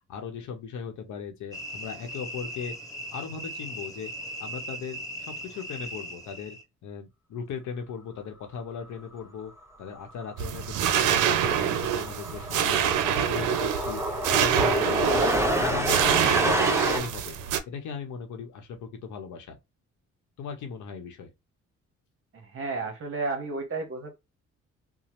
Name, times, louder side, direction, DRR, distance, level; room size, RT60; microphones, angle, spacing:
voice 1, 0.1-2.7 3.1-4.1 4.4-6.6 6.8-9.5 9.8-12.8 13.1-15.2 15.6-17.4 17.7-19.6 20.4-21.3, left 6 dB, 75° left, 0.8 m, -38 dB
sound 1, 1.5-6.6, equal, 10° left, 1.2 m, -38 dB
sound 2, 10.2-10.4 10.7-17.0, equal, 10° right, 0.8 m, -28 dB
sound 3, 10.4-17.6, right 9 dB, 85° right, 0.5 m, -26 dB
voice 2, 22.5-24.1, right 3 dB, 45° right, 0.8 m, -32 dB
2.9 x 2.0 x 2.9 m
cardioid pair, 90°, 30 cm